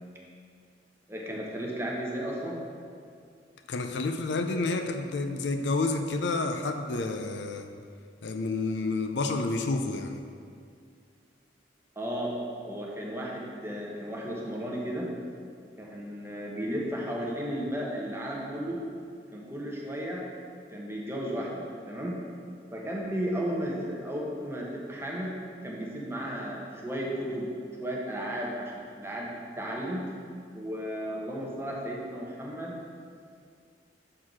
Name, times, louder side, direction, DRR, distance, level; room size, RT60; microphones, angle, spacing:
voice 1, 1.1-2.6 12.0-12.4 12.6-15.1 15.8-18.8 19.3-20.3 20.7-22.2 22.7-25.4 25.6-27.5 27.8-30.1 30.5-32.8, equal, 15° right, -3 dB, 0.9 m, -34 dB
voice 2, 3.7-7.7 8.2-10.2, left 3 dB, 75° left, 6 dB, 0.5 m, -29 dB
6.3 x 4.0 x 6.1 m, 2.2 s
head